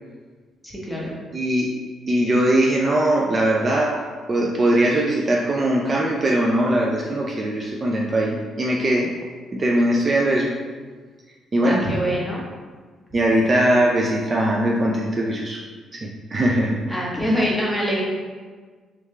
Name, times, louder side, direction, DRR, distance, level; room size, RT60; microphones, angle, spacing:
voice 1, 0.6-1.2 11.6-12.4 16.9-18.0, equal, ahead, -5 dB, 1.1 m, -24 dB
voice 2, 1.3-1.7 2.1-4.0 4.3-9.1 9.5-10.5 11.5-11.9 13.1-15.6 15.9-16.8, right 1 dB, 35° right, -2 dB, 0.4 m, -20 dB
3.5 x 3.3 x 3.3 m, 1.5 s
cardioid pair, 90°, 0 cm